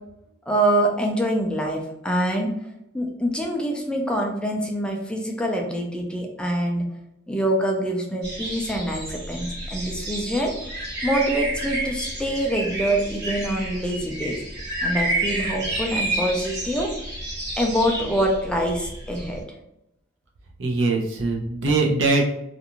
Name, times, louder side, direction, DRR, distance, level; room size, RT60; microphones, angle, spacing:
voice 1, 0.5-2.5 2.9-6.9 7.3-10.5 11.0-14.4 14.8-16.9 17.6-19.5, right 1 dB, 5° left, 0 dB, 0.3 m, -25 dB
sound 1, 8.2-19.4, right 1 dB, 65° right, 1.2 m, -30 dB
voice 2, 20.6-22.2, right 3 dB, 80° right, 0 dB, 0.6 m, -22 dB
2.5 x 2.4 x 2.8 m, 0.83 s
head